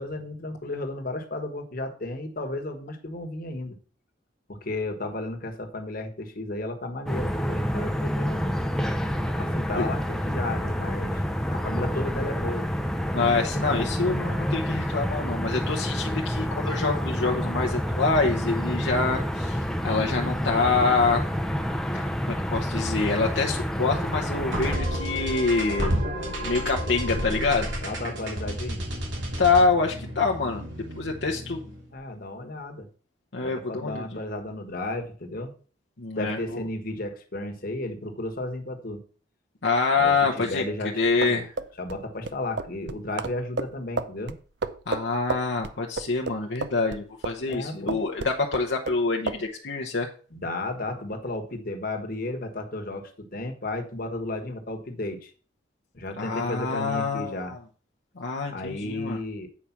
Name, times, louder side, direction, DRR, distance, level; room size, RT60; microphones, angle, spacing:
voice 1, 0.0-3.8 4.5-8.5 9.4-11.2 11.5-12.7 17.1-17.5 27.8-28.9 31.9-32.9 33.4-35.5 36.2-39.0 40.0-41.4 41.8-44.3 47.5-48.0 50.3-55.3 55.9-57.5 58.5-59.5, left 2 dB, 50° left, 4 dB, 1.4 m, -33 dB
sound 1, 7.1-24.8, equal, 5° left, 0.6 m, -28 dB
voice 2, 13.1-19.6 19.8-21.2 21.9-25.9 26.4-27.7 29.4-30.6 31.0-31.6 33.3-34.2 36.0-36.6 39.6-40.6 41.0-41.5 44.9-50.1 56.2-57.6 58.2-59.2, left 4 dB, 70° left, 0 dB, 0.9 m, -26 dB
sound 2, 24.5-31.8, equal, 80° right, 3.1 m, -31 dB
sound 3, 41.0-47.6 47.9-49.0 49.3-49.4, right 3 dB, 65° right, 0.6 m, -32 dB
8.6 x 4.9 x 5.8 m, 0.40 s
head